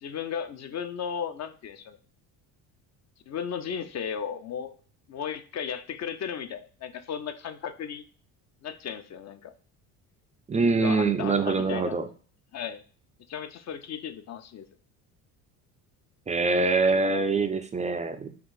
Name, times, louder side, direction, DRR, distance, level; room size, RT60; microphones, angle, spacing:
voice 1, 0.0-2.0 3.3-4.7 5.1-8.0 8.6-9.5 10.8-12.0 12.5-12.8 13.3-14.6, left 8 dB, 40° left, 11 dB, 0.5 m, -35 dB
voice 2, 10.5-12.0 16.3-18.3, right 3 dB, 15° right, 7 dB, 0.3 m, -24 dB
4.6 x 2.5 x 3.9 m, 0.41 s
supercardioid pair, 80°, 45 cm